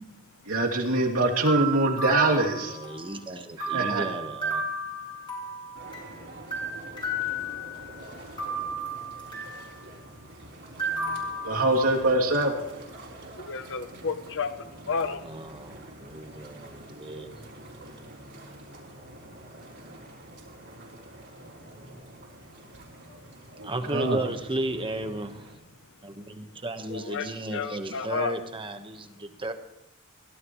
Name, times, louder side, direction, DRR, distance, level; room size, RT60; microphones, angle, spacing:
voice 1, 0.5-2.8 3.6-4.0 11.4-12.5 23.6-24.2, right 2 dB, 75° right, -1 dB, 2.9 m, -24 dB
sound 1, 1.3-3.2 3.6-6.1 6.5-8.0 8.4-9.7 10.8-12.2, right 1 dB, 25° left, 6.1 m, -33 dB
voice 2, 2.7-4.6 15.2-17.3 23.6-25.5 26.0-29.5, right 1 dB, 25° right, 7 dB, 1.3 m, -34 dB
sound 2, 5.7-25.5, right 1 dB, 55° right, 3.9 m, -46 dB
voice 3, 13.4-15.2 26.9-28.3, left 5 dB, 60° left, 10 dB, 0.8 m, -32 dB
22.5 x 16.5 x 3.2 m, 0.86 s
head